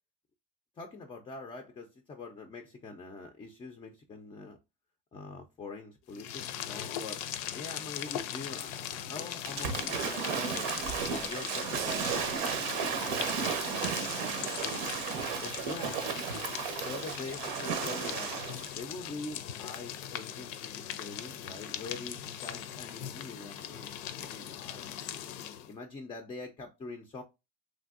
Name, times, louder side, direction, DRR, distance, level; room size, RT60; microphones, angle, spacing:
voice 1, 0.8-4.6 5.1-7.2 7.5-10.7 11.1-15.0 15.4-18.3 18.7-25.3 25.7-27.2, left 3 dB, 20° left, 0.4 m, -44 dB
sound 1, 6.1-25.7, left 10 dB, 75° left, 0.5 m, -40 dB
Waves surf / Splash splatter, 9.5-18.7, right 6 dB, 80° right, 0.8 m, -34 dB
sound 2, 11.8-16.0, right 8 dB, 50° right, 0.5 m, -46 dB
3.2 x 2.5 x 2.4 m
supercardioid pair, 115°, 31 cm